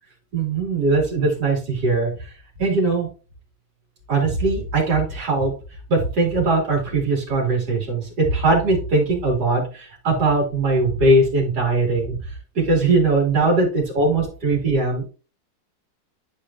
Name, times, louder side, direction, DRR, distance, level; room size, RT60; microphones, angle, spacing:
voice 1, 0.3-2.1 2.6-3.1 4.1-5.5 5.9-12.2 12.6-15.1, right 2 dB, 65° right, -2 dB, 3.5 m, -20 dB
11.0 x 5.1 x 2.8 m, 0.36 s
omnidirectional pair, 1.9 m